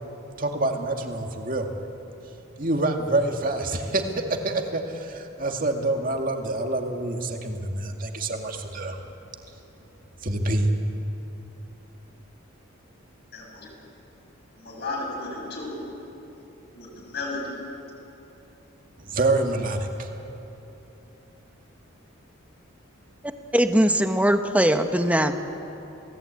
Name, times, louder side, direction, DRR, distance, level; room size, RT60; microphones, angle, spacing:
voice 1, 0.4-1.7 2.6-4.0 4.3-9.0 10.2-10.7 19.0-20.1, right 2 dB, 40° right, 3 dB, 2.1 m, -26 dB
voice 2, 13.3-13.7 14.6-15.8 16.7-17.6, left 2 dB, 50° left, -2 dB, 6.8 m, -34 dB
voice 3, 23.5-25.3, right 1 dB, 5° right, 7 dB, 1.1 m, -20 dB
29.5 x 18.5 x 8.8 m, 3.0 s
head